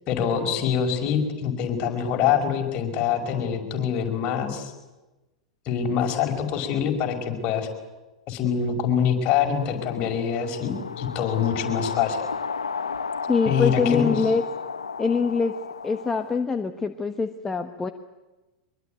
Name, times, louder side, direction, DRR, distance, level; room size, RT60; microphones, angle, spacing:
voice 1, 0.1-4.7 5.7-7.7 8.3-12.2 13.5-14.1, left 8 dB, 40° left, 3 dB, 5.6 m, -25 dB
sound 1, 9.5-16.4, left 5 dB, 80° left, 1.0 m, -33 dB
voice 2, 13.3-14.4 15.0-15.5 15.8-17.9, left 5 dB, 15° left, 8 dB, 1.2 m, -24 dB
24.0 x 22.0 x 9.5 m, 1.1 s
figure-of-eight pair, 95°, 3 cm